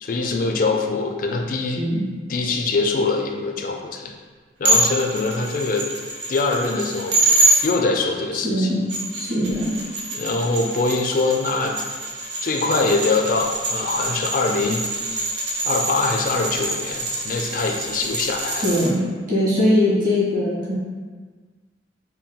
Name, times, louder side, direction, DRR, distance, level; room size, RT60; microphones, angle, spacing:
voice 1, 0.0-1.9 2.3-4.1 4.6-5.9 6.3-7.2 7.6-8.7 10.1-11.9 12.4-14.9 15.6-18.7, left 3 dB, 50° left, 2 dB, 0.4 m, -23 dB
sound 1, 4.6-7.6 8.7-18.9, right 2 dB, 85° right, 0.7 m, -25 dB
voice 2, 8.4-8.8 9.1-9.7 18.6-19.0 19.3-20.7, left 1 dB, 50° right, -8 dB, 1.5 m, -20 dB
4.2 x 2.2 x 3.6 m, 1.4 s
head